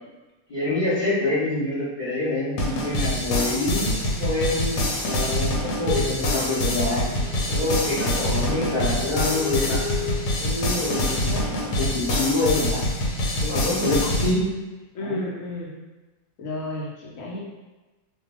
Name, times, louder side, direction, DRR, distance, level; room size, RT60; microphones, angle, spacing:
voice 1, 0.5-4.8 5.0-7.0 7.5-9.8 10.4-12.8 13.4-14.5 15.0-15.2, left 2 dB, 50° left, -11 dB, 0.5 m, -26 dB
sound 1, 2.6-14.3, left 1 dB, 90° left, 1.2 m, -25 dB
sound 2, 3.9-10.2, left 3 dB, 45° right, 0.8 m, -38 dB
voice 2, 14.9-15.7 16.4-17.4, left 2 dB, 65° left, -4 dB, 0.9 m, -32 dB
2.5 x 2.2 x 2.9 m, 1.2 s
omnidirectional pair, 1.7 m